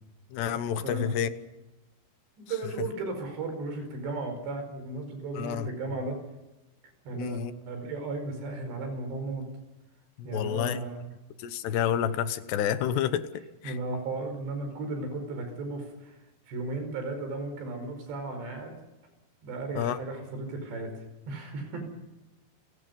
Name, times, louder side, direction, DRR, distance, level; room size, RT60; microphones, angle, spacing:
voice 1, 0.3-1.3 5.4-5.7 7.2-7.5 10.2-10.8 11.4-13.2 13.6-13.7 19.8-20.0, left 9 dB, 80° left, 3.2 m, -29 dB
voice 2, 0.8-1.1 2.4-6.2 7.1-9.5 10.2-11.1 13.6-16.2 16.5-18.8 19.4-21.8, right 3 dB, 85° right, 7.3 m, -35 dB
29.5 x 17.5 x 5.5 m
omnidirectional pair, 4.9 m